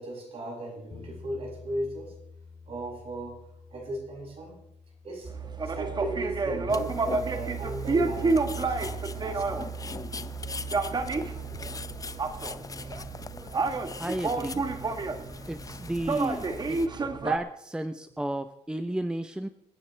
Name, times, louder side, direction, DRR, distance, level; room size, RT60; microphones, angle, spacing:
voice 1, 0.0-2.2 2.7-3.4 3.7-4.6 5.0-5.3 5.6-9.5, right 1 dB, 50° right, -2 dB, 7.2 m, -36 dB
sound 1, 0.9-10.9, left 5 dB, 45° left, 2.7 m, -53 dB
sound 2, 5.2-17.4, right 3 dB, 35° right, 1.4 m, -30 dB
sound 3, 6.7-16.9, left 4 dB, 25° left, 0.7 m, -42 dB
voice 2, 14.0-14.6 15.5-19.5, right 1 dB, 5° right, 10 dB, 0.7 m, -33 dB
28.0 x 9.6 x 3.4 m, 0.81 s
cardioid pair, 80°, 13 cm